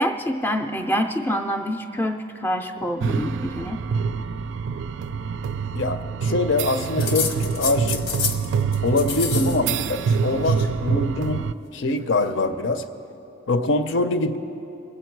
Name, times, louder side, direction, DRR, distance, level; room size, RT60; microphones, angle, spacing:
voice 1, 0.0-3.8, equal, 10° left, 5 dB, 0.4 m, -26 dB
sound 1, 3.0-11.5, right 5 dB, 65° right, 0.3 m, -26 dB
voice 2, 5.7-8.1 8.8-12.9 13.5-14.4, left 2 dB, 65° left, 10 dB, 0.6 m, -24 dB
sound 2, 7.0-8.5 8.7-9.6 9.8-10.7 11.7-12.4, left 6 dB, 90° left, 1.0 m, -30 dB
22.5 x 8.1 x 4.6 m, 2.9 s
head